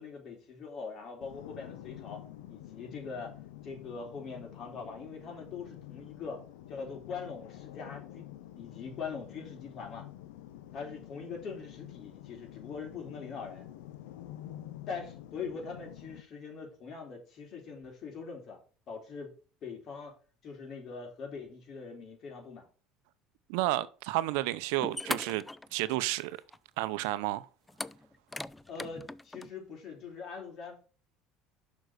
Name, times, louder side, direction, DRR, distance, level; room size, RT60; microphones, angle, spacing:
voice 1, 0.0-2.2 2.5-3.3 3.6-6.4 6.7-8.3 8.6-10.1 10.7-13.6 14.9-18.6 18.9-19.3 19.6-20.2 20.4-22.7 28.7-30.9, left 5 dB, 50° left, 4.0 m, -42 dB
sound 1, 1.2-16.2, left 13 dB, 85° left, 0.8 m, -48 dB
voice 2, 23.5-25.4 25.7-26.4 26.8-27.5, right 17 dB, 80° right, 0.6 m, -31 dB
sound 2, 24.4-24.5 24.8-26.2 26.5-26.6 27.7-29.5, left 2 dB, 10° left, 0.4 m, -39 dB
6.5 x 5.3 x 6.3 m
supercardioid pair, 90°, 0 cm